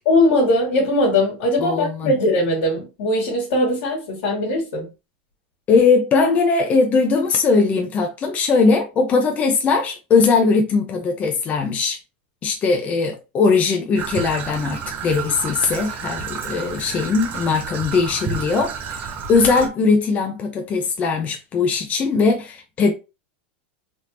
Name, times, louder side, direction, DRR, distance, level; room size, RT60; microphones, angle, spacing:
voice 1, 0.0-4.9, left 1 dB, 70° left, 1.6 m, -20 dB
voice 2, 1.6-2.2 5.7-12.0 12.4-22.9, left 4 dB, 25° left, 0.5 m, -20 dB
Traffic noise roadway noise / Trickle dribble, 13.9-19.7, right 6 dB, 30° right, 0.6 m, -31 dB
3.4 x 2.6 x 2.9 m
supercardioid pair, 150°, 6 cm